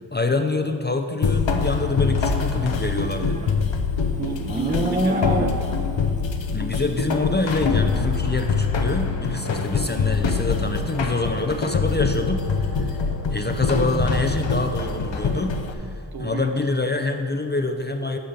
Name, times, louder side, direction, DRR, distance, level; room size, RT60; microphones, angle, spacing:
voice 1, 0.0-3.4 6.5-13.0 13.3-18.2, left 3 dB, 20° left, 4 dB, 0.5 m, -26 dB
sound 1, 1.2-15.7, left 5 dB, 70° left, 0.8 m, -24 dB
Livestock farm animals working animals, 2.7-5.9, right 1 dB, 15° right, 0.8 m, -27 dB
voice 2, 4.1-5.6 16.1-16.6, right 4 dB, 50° right, 5 dB, 0.9 m, -33 dB
sound 2, 9.8-15.6, right 1 dB, 65° right, 1.9 m, -36 dB
8.7 x 5.5 x 5.1 m, 2.3 s
cardioid pair, 45°, 48 cm